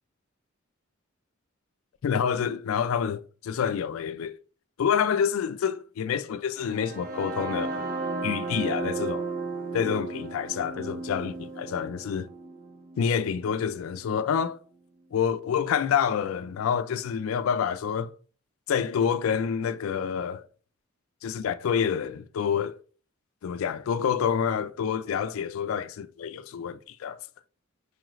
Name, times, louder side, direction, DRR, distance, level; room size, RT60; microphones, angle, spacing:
voice 1, 2.0-4.4 4.8-7.8 8.2-9.3 9.7-12.3 13.0-14.6 15.1-18.1 18.7-20.4 21.2-22.8 23.4-27.2, left 7 dB, 80° left, 0.3 m, -27 dB
sound 1, 6.6-14.5, right 3 dB, 45° right, 0.5 m, -35 dB
4.7 x 2.4 x 3.0 m
head